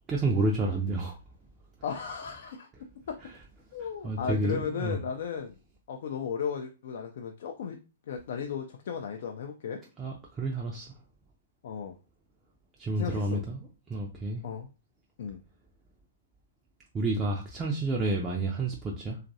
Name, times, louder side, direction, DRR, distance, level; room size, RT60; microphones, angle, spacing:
voice 1, 0.1-1.2 3.2-3.3 3.8-5.0 10.0-10.9 12.8-14.4 16.9-19.2, right 2 dB, 15° right, -2 dB, 0.5 m, -30 dB
voice 2, 1.8-2.7 3.1-3.2 3.7-5.6 5.9-7.8 8.1-9.8 11.6-11.9 13.0-13.4 14.4-14.7 15.2-15.4, left 7 dB, 55° left, 3 dB, 0.4 m, -35 dB
2.9 x 2.4 x 2.6 m, 0.31 s
figure-of-eight pair, 110°, 0 cm